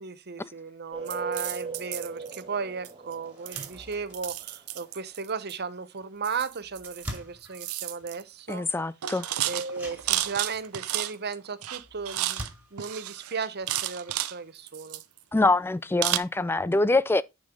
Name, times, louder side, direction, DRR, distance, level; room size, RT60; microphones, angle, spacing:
voice 1, 0.0-8.7 9.4-15.0, right 5 dB, 50° right, 0.9 m, -35 dB
sound 1, 0.9-4.5, right 4 dB, 25° right, 0.9 m, -39 dB
sound 2, 1.1-2.4 2.8-3.1 3.5-5.5 6.2-7.2 7.4-8.2 8.5-8.7 9.0-11.3 11.6-12.5 12.8-14.3 14.7-15.4 16.0-16.2, right 13 dB, 85° right, 0.7 m, -32 dB
sound 3, 2.2-2.3 2.8-2.9 3.2-14.9, equal, 5° right, 2.3 m, -47 dB
voice 2, 8.5-9.3 15.3-17.2, left 2 dB, 10° left, 0.3 m, -24 dB
9.9 x 5.5 x 3.7 m
head